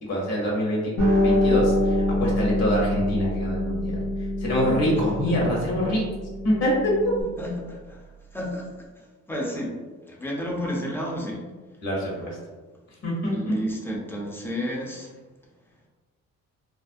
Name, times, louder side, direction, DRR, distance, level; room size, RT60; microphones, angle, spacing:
voice 1, 0.0-0.9 1.2-4.0 4.4-6.0 6.4-6.9 11.8-12.4 13.0-13.5, equal, 60° left, -4 dB, 1.0 m, -25 dB
Bass guitar, 1.0-5.7 6.0-7.2, left 2 dB, 75° left, 0.7 m, -26 dB
sound 1, 1.0-7.5, right 4 dB, 60° right, 0.5 m, -31 dB
voice 2, 7.4-8.1 8.3-8.9 9.3-9.7 10.0-11.5 13.3-15.1, equal, 10° left, -3 dB, 0.5 m, -31 dB
2.4 x 2.0 x 2.5 m, 1.3 s
cardioid pair, 90°, 30 cm